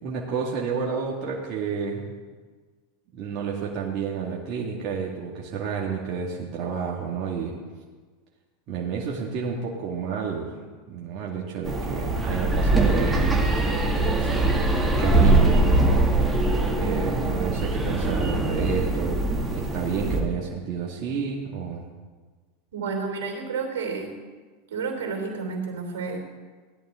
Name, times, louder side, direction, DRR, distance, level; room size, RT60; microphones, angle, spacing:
voice 1, 0.0-2.0 3.1-7.5 8.7-10.6 10.9-16.5 16.8-21.8, right 6 dB, 50° right, -3 dB, 2.0 m, -30 dB
sound 1, 11.6-20.2, right 2 dB, 10° right, 2.4 m, -22 dB
voice 2, 22.7-24.1 24.7-26.2, right 4 dB, 80° right, 2 dB, 3.2 m, -30 dB
17.0 x 11.0 x 3.8 m, 1.4 s
hypercardioid pair, 100°, 0 cm